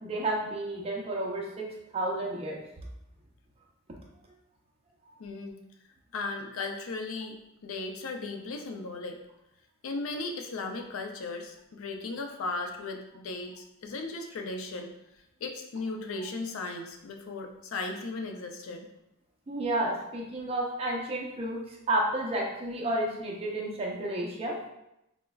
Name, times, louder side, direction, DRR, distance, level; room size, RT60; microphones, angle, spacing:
voice 1, 0.0-1.7 1.9-2.6 19.5-21.6 21.9-24.5, right 1 dB, 30° right, -2 dB, 0.5 m, -31 dB
voice 2, 5.2-5.6 6.1-9.2 9.8-14.9 15.4-18.9, left 3 dB, 80° left, 4 dB, 0.4 m, -36 dB
4.5 x 2.0 x 2.2 m, 0.85 s
head